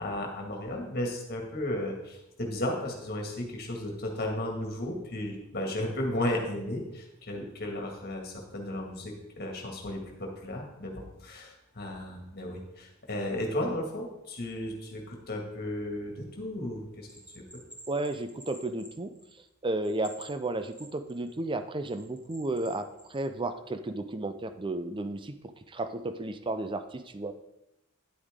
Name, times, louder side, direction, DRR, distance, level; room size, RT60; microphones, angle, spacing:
voice 1, 0.0-17.1 17.3-17.4, left 1 dB, 45° left, 2 dB, 1.9 m, -34 dB
Bell, 17.1-19.5 19.8-21.3 21.9-23.2, right 1 dB, 5° right, 1.5 m, -50 dB
voice 2, 17.9-19.1 19.6-25.3 25.7-27.3, right 2 dB, 20° right, 9 dB, 0.5 m, -33 dB
10.0 x 8.4 x 3.7 m, 0.87 s
head